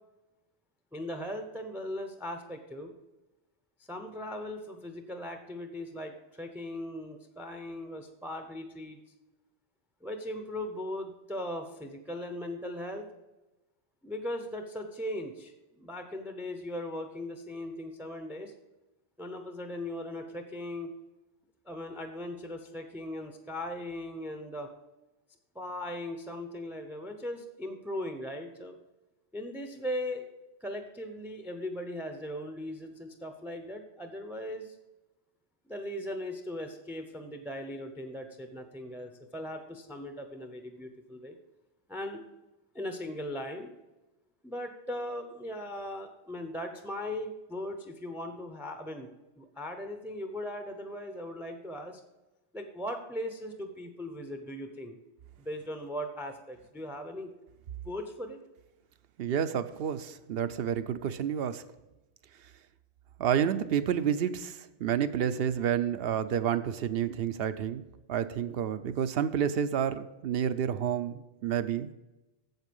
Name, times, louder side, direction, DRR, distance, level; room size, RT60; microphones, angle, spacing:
voice 1, 0.9-2.9 3.9-9.0 10.0-13.1 14.0-18.5 19.2-20.9 21.7-24.7 25.5-28.8 29.3-30.3 30.6-34.8 35.7-41.4 41.9-42.2 42.7-43.7 44.4-49.1 49.4-52.0 52.5-54.9 55.4-57.3 57.8-58.4, left 1 dB, ahead, 6 dB, 0.6 m, -38 dB
voice 2, 59.2-61.6 63.2-67.8 68.1-71.9, right 9 dB, 65° right, 12 dB, 0.7 m, -29 dB
8.0 x 7.4 x 5.3 m, 1.0 s
omnidirectional pair, 1.1 m